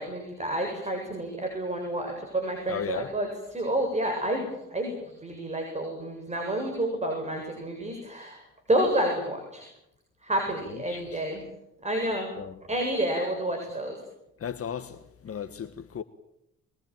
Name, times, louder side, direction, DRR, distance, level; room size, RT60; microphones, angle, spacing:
voice 1, 0.0-8.4 8.7-9.6 10.2-11.4 11.8-12.3 12.7-13.9, right 1 dB, 20° right, 7.8 m, -29 dB
voice 2, 2.7-3.1 10.9-11.2 12.4-12.5 14.4-15.0 15.2-16.0, left 8 dB, 50° left, 1.4 m, -35 dB
24.0 x 22.5 x 9.1 m
cardioid pair, 90°, 30 cm